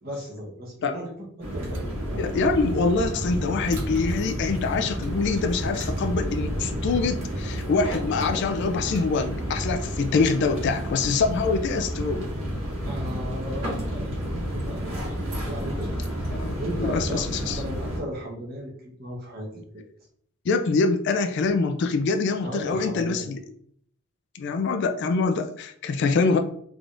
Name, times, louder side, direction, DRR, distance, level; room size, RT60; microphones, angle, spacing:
voice 1, 0.0-2.3 12.8-15.9 16.1-19.8 22.4-23.3, equal, 45° right, -3 dB, 1.0 m, -36 dB
sound 1, 1.4-18.0, equal, 75° right, 1.5 m, -30 dB
voice 2, 2.1-12.2 16.3-17.6 20.5-23.4 24.3-26.4, left 4 dB, 55° left, 6 dB, 0.3 m, -25 dB
3.6 x 3.3 x 2.5 m, 0.66 s
head